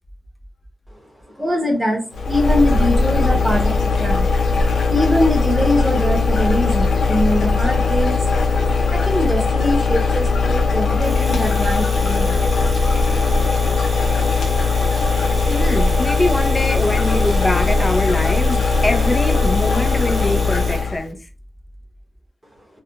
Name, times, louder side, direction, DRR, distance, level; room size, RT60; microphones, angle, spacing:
voice 1, 0.9-4.3 4.6-8.6 8.8-13.0, left 1 dB, 5° right, 1.0 m, -23 dB
sound 1, 2.1-21.1, left 4 dB, 90° left, 0.5 m, -19 dB
Domestic sounds home sounds, 11.0-20.9, right 3 dB, 55° right, 0.4 m, -36 dB
voice 2, 15.5-21.3, left 1 dB, 25° left, 0.6 m, -23 dB
3.5 x 2.2 x 2.4 m
cardioid pair, 55°, 0 cm